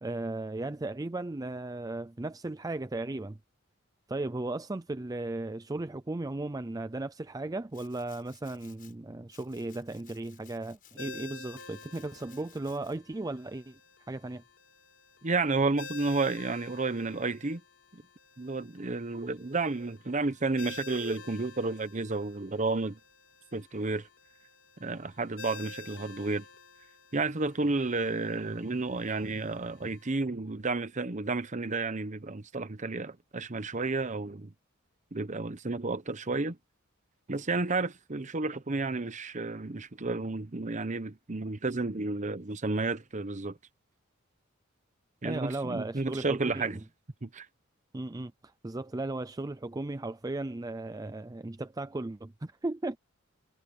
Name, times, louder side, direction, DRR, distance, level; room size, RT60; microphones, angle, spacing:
voice 1, 0.0-3.4 4.1-13.8 14.1-14.4 45.2-46.8 47.9-53.0, right 2 dB, 15° right, 0.5 m, -36 dB
Domestic sounds home sounds, 7.7-8.9 9.3-11.0 11.5-13.0, left 10 dB, 40° left, 6.3 m, -59 dB
Ringtone, 11.0-30.1, left 4 dB, 70° left, 3.9 m, -50 dB
voice 2, 15.2-17.6 17.9-18.0 18.4-23.0 23.5-24.1 24.8-26.5 27.1-34.5 35.1-36.6 37.3-43.6 45.2-46.8 47.2-47.5, right 3 dB, 35° right, 0.9 m, -31 dB
head